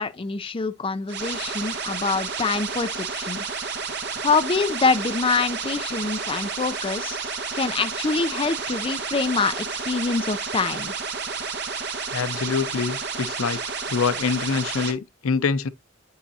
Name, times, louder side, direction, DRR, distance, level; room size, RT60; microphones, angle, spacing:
voice 1, 0.0-3.4 4.2-7.2 7.5-10.9, left 4 dB, 25° left, 0.4 m, -25 dB
sound 1, 1.1-14.9, right 5 dB, 55° right, 1.4 m, -31 dB
voice 2, 12.1-13.6 13.9-15.7, left 5 dB, 85° left, 0.5 m, -25 dB
8.7 x 5.5 x 2.7 m
head